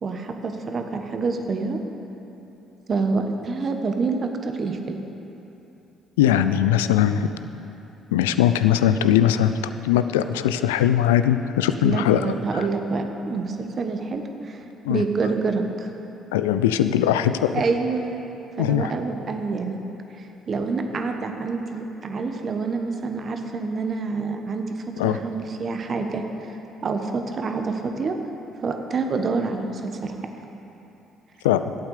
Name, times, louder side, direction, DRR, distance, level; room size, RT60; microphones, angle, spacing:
voice 1, 0.0-1.8 2.9-5.0 11.8-14.6 14.9-15.9 17.5-18.2 18.6-19.8 20.5-24.6 25.0-26.2 26.8-28.2 28.6-30.1, right 4 dB, 45° right, 5 dB, 1.2 m, -27 dB
voice 2, 6.2-7.3 8.1-9.5 9.8-12.7 14.8-15.0 16.3-17.6 18.6-18.9 25.0-25.2 31.4-31.7, left 10 dB, 85° left, 11 dB, 0.4 m, -20 dB
11.5 x 8.6 x 6.6 m, 3.0 s
hypercardioid pair, 55°, 0 cm